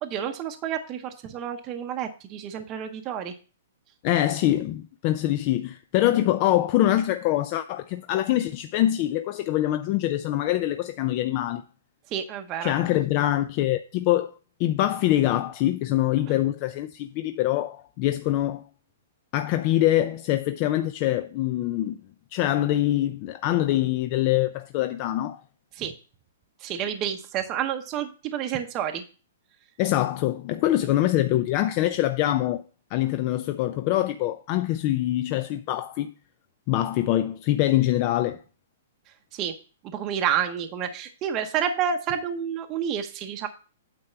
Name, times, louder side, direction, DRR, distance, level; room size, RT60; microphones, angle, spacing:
voice 1, 0.0-3.3 12.1-12.7 25.8-25.9 26.6-29.0 39.4-39.5 39.9-43.5, right 8 dB, 25° right, 0.7 m, -29 dB
voice 2, 4.0-11.7 12.6-14.3 14.6-18.6 19.3-22.0 22.3-25.4 29.8-32.6 32.9-36.1 36.7-38.4, left 14 dB, 35° left, 0.4 m, -24 dB
8.9 x 3.4 x 6.7 m
hypercardioid pair, 160°, 0 cm